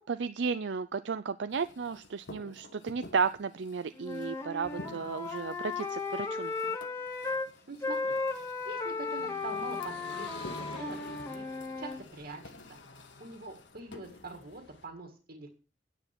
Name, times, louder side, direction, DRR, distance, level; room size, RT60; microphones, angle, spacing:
voice 1, 0.1-6.5, right 5 dB, 75° right, 12 dB, 0.5 m, -33 dB
sound 1, 1.5-14.6, left 2 dB, 90° left, 1.5 m, -52 dB
Wind instrument woodwind instrument, 4.0-7.5 7.8-12.0, left 3 dB, 15° left, 1.8 m, -35 dB
voice 2, 7.7-11.4 11.8-12.5 12.9-15.5, right 3 dB, 60° right, 3 dB, 2.0 m, -44 dB
sound 2, 9.2-14.9, left 3 dB, 75° left, 2.0 m, -49 dB
10.0 x 9.3 x 5.9 m, 0.37 s
head